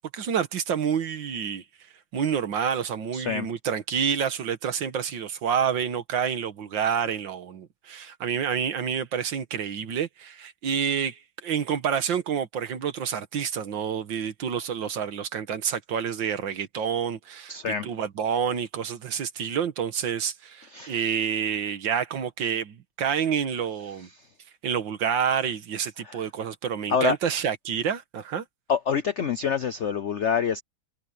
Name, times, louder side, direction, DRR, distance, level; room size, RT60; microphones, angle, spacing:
voice 1, 0.1-1.6 2.1-17.5 17.8-24.1 24.6-28.4, right 7 dB, 70° right, 2.0 m, -28 dB
voice 2, 3.1-3.5 17.5-17.9 20.7-21.0 24.0-24.3 26.0-26.3 26.9-27.2 28.7-30.6, left 6 dB, 70° left, 0.6 m, -27 dB
omnidirectional pair, 2.2 m